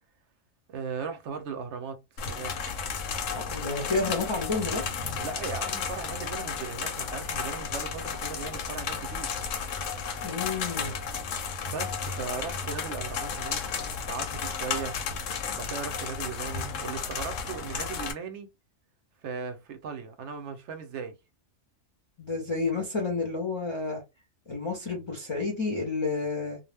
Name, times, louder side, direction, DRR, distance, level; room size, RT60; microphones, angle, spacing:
voice 1, 0.7-2.0 2.3-2.5 5.2-9.3 11.6-15.0 15.6-18.5 19.2-21.2, right 5 dB, 70° right, 0.8 m, -37 dB
sound 1, 2.2-18.1, left 6 dB, 75° left, 0.9 m, -33 dB
voice 2, 3.3-4.8 10.2-11.0 22.2-24.0 24.5-26.6, left 3 dB, 30° left, 0.5 m, -30 dB
2.3 x 2.0 x 3.3 m
omnidirectional pair, 1.3 m